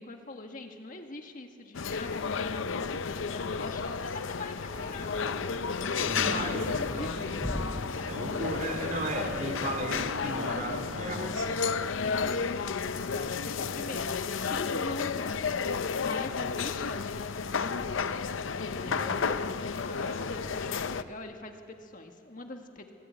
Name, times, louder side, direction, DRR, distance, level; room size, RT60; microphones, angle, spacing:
voice 1, 0.0-5.4 5.9-7.4 8.0-8.1 8.6-9.0 12.2-15.5 15.9-18.2 18.5-22.9, left 2 dB, 45° left, 4 dB, 1.7 m, -43 dB
sound 1, 1.7-21.0, left 5 dB, 75° left, 0.6 m, -32 dB
sound 2, 4.7-10.0, left 1 dB, 10° left, 1.0 m, -41 dB
voice 2, 6.0-7.4 8.0-11.5 18.8-19.2, right 1 dB, 40° right, 4 dB, 3.3 m, -35 dB
26.5 x 18.0 x 9.5 m, 2.8 s
head